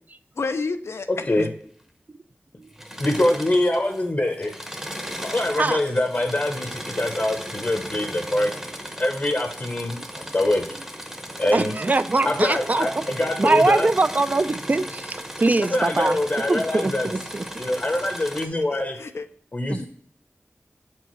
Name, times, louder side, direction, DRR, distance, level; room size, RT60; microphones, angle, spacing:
voice 1, 0.4-1.5 18.6-19.3 19.8-19.9, left 4 dB, 85° left, 9 dB, 0.5 m, -31 dB
voice 2, 1.1-1.5 3.0-4.6 5.2-8.5 9.0-10.8 11.4-11.7 12.2-13.9 15.6-17.1 17.6-19.0 19.5-19.9, left 1 dB, 40° left, 4 dB, 0.8 m, -24 dB
Engine / Mechanisms, 2.7-4.0 4.3-18.5, equal, 10° right, 0.8 m, -36 dB
voice 3, 11.5-13.0 13.4-16.2 16.5-17.5 19.7-19.8, right 2 dB, 40° right, 13 dB, 0.4 m, -22 dB
7.6 x 4.6 x 3.0 m, 0.63 s
wide cardioid pair, 75°, 4 cm